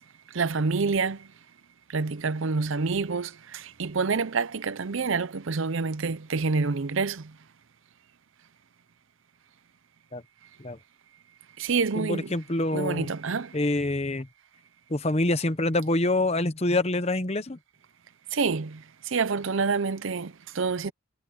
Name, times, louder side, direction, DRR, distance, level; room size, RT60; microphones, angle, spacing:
voice 1, 0.3-1.3 1.9-7.3 11.6-12.3 12.7-13.6 18.3-20.9, right 4 dB, 65° right, 0.6 m, -27 dB
voice 2, 12.0-13.1 13.5-14.3 14.9-17.6, left 2 dB, 30° left, 1.0 m, -26 dB
head